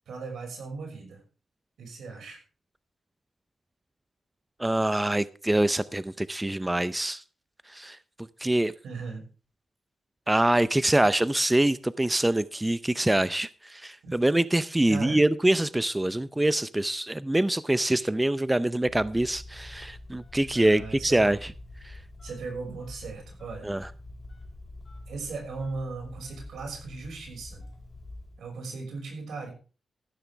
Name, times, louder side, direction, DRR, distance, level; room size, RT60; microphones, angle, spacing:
voice 1, 0.1-1.2 1.8-2.4 8.8-9.3 14.0-14.1 14.9-15.2 20.5-21.3 22.2-23.7 25.1-27.6 28.4-29.5, right 4 dB, 90° right, 3 dB, 5.7 m, -37 dB
voice 2, 4.6-7.2 7.7-8.7 10.3-21.5 21.8-22.0 23.6-23.9, right 1 dB, 15° right, 15 dB, 0.5 m, -25 dB
Telephone, 18.8-28.5, left 2 dB, 40° left, 6.7 m, -46 dB
14.5 x 13.0 x 3.4 m, 0.35 s
cardioid pair, 90°, 0 cm